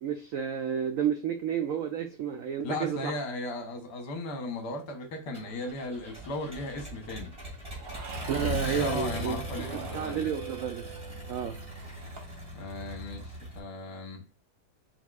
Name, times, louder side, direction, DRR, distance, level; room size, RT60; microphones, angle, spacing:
voice 1, 0.0-3.1 8.3-9.4 9.7-10.8 11.3-11.5, right 8 dB, 80° right, 0.7 m, -31 dB
voice 2, 2.6-7.3 8.6-10.3 12.5-14.2, left 2 dB, 65° left, 1.5 m, -36 dB
Accelerating revving vroom, 5.3-13.6, equal, 20° right, 1.9 m, -39 dB
sound 1, 6.0-6.9 7.8-8.5 9.4-10.3 11.6-12.4, right 5 dB, 65° right, 1.2 m, -46 dB
sound 2, 7.4-7.6 8.4-12.2, right 8 dB, 40° right, 0.9 m, -46 dB
4.3 x 4.2 x 2.3 m
omnidirectional pair, 2.0 m